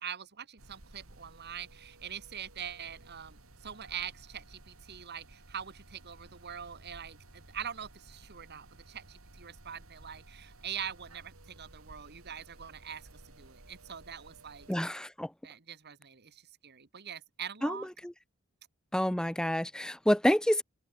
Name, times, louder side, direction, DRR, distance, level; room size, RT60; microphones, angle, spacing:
voice 1, 0.0-14.7 15.4-17.9, right 8 dB, 50° right, 1.6 m, -43 dB
FP Oil Filled Radiator Run, 0.6-14.8, right 2 dB, 70° right, 3.4 m, -55 dB
voice 2, 14.7-15.3 17.6-17.8 18.0-18.1 18.9-20.6, equal, 5° left, 0.6 m, -28 dB
open air
head